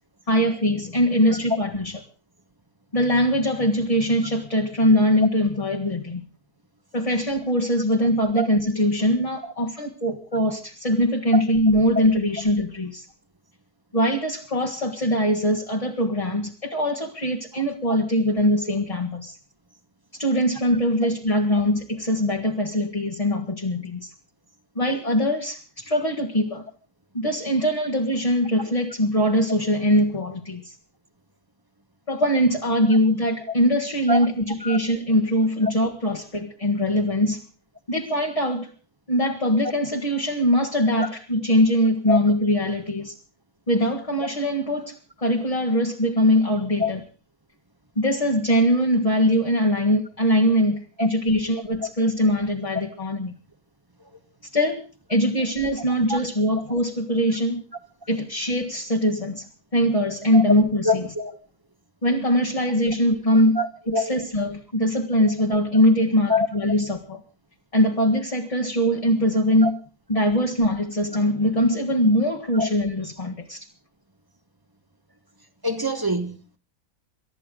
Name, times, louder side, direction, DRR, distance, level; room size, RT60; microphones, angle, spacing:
voice 1, 0.3-2.0 2.9-6.2 6.9-13.0 13.9-19.3 20.1-24.1 24.7-26.6 27.1-30.7 32.1-37.4 37.9-38.7 39.1-43.1 43.7-47.0 47.9-53.3 54.5-54.8 55.1-57.6 58.1-61.1 62.0-63.6 63.9-67.2 67.7-69.7 70.1-73.7, equal, 25° left, 1.7 m, -22 dB
voice 2, 60.8-61.4 63.6-64.2 66.3-66.5 69.6-69.7 72.5-72.7 75.6-76.6, left 1 dB, 15° right, 1.3 m, -24 dB
28.0 x 13.0 x 3.9 m
omnidirectional pair, 1.5 m